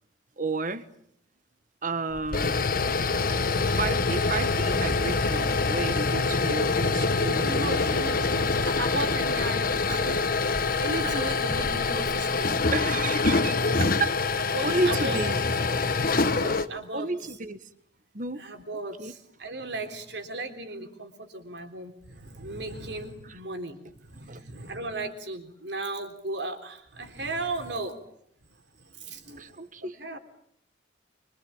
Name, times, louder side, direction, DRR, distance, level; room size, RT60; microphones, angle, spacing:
voice 1, 0.4-0.8 1.8-2.6 3.6-8.1 9.9-10.2 11.0-11.3 12.7-15.4 16.9-17.6 18.1-18.4 19.0-19.1 23.2-23.3 24.3-24.4 29.4-30.0, right 3 dB, 45° right, 12 dB, 1.6 m, -32 dB
sound 1, 2.1-16.7, left 3 dB, 50° left, 1.4 m, -25 dB
voice 2, 7.4-10.2 10.8-12.6 14.5-15.2 16.2-17.1 18.4-28.0 28.8-30.2, right 2 dB, 65° right, 7 dB, 3.8 m, -36 dB
27.0 x 24.5 x 8.9 m, 0.70 s
head